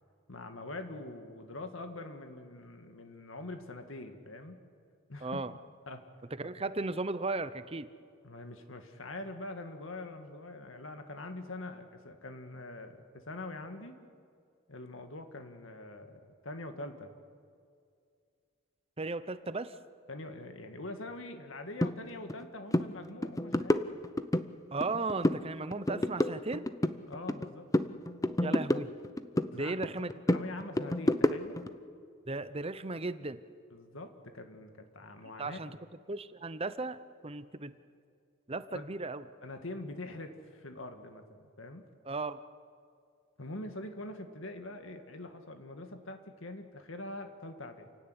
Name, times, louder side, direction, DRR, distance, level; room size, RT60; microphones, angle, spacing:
voice 1, 0.3-4.6 5.1-5.4 5.9-6.0 8.2-14.0 14.7-17.2 20.1-23.9 27.1-27.7 29.3-29.8 30.3-31.7 33.7-35.6 38.7-38.8 39.4-41.8 43.4-47.9, left 2 dB, 70° left, 6 dB, 2.0 m, -44 dB
voice 2, 5.2-5.5 6.4-7.9 19.0-19.7 24.7-26.6 28.4-28.9 29.5-30.1 32.3-33.4 35.4-35.8 36.1-37.0 37.2-37.7 38.5-39.2 42.1-42.4, right 3 dB, 30° right, 13 dB, 0.8 m, -35 dB
sound 1, 21.8-21.9 22.3-22.5 22.7-22.9 23.2-24.5 24.8-25.4 25.7-27.5 27.7-29.5 29.8-31.7, left 1 dB, 15° left, 0.7 m, -29 dB
28.5 x 16.5 x 9.8 m, 2.2 s
head